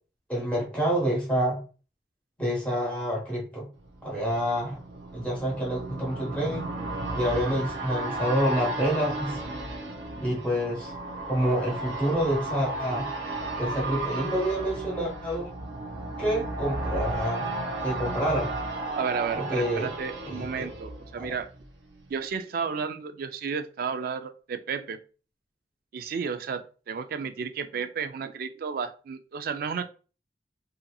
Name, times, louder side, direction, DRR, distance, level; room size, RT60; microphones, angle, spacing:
voice 1, 0.3-1.6 2.4-3.7 4.0-4.8 5.1-6.7 7.1-9.4 10.2-10.9 11.3-13.1 13.6-15.5 16.2-17.5 17.8-18.5 19.4-19.9 20.3-20.6 21.2-21.3, equal, 5° left, -5 dB, 1.1 m, -27 dB
sound 1, 3.9-21.7 22.0-22.1, right 2 dB, 90° right, 0.6 m, -34 dB
voice 2, 19.0-21.5 22.1-25.0 25.9-29.8, right 6 dB, 55° right, 9 dB, 0.3 m, -32 dB
2.7 x 2.6 x 2.2 m, 0.36 s
head